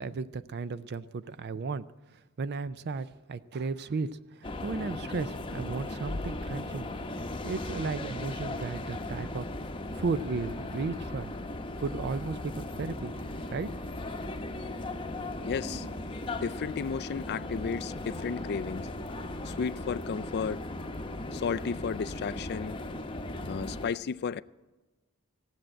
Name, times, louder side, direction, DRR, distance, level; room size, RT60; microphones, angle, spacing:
voice 1, 0.0-1.8 2.4-9.5 9.9-11.3 11.8-13.1 13.5-13.7, right 4 dB, 50° right, 0.4 m, -35 dB
sound 1, 4.4-23.9, left 2 dB, 25° left, 0.8 m, -37 dB
voice 2, 15.4-15.9 16.4-18.9 19.4-20.6 21.3-22.8 23.4-24.4, left 6 dB, 45° left, 0.3 m, -33 dB
16.0 x 7.7 x 8.7 m
head